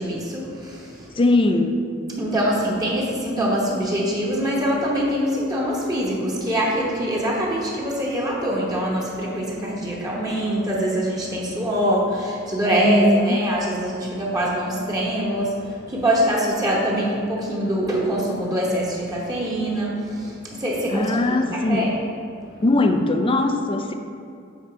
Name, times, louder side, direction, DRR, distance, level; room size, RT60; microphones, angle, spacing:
voice 1, 0.0-1.2 2.2-21.9 22.4-22.5, equal, 20° right, -4 dB, 1.0 m, -24 dB
voice 2, 1.2-1.8 12.8-13.4 20.9-21.9 22.6-23.9, left 2 dB, 25° left, 6 dB, 0.4 m, -20 dB
8.0 x 3.7 x 5.0 m, 2.5 s
head